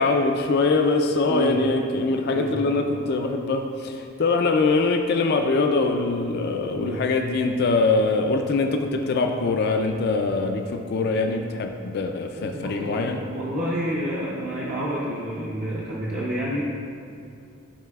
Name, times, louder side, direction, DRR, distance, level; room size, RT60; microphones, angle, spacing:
voice 1, 0.0-13.2, left 3 dB, 50° left, 4 dB, 0.3 m, -23 dB
voice 2, 1.2-1.6 2.3-2.6 6.8-7.0 12.5-16.6, right 1 dB, 40° right, -7 dB, 0.6 m, -29 dB
10.0 x 4.2 x 2.3 m, 2.4 s
head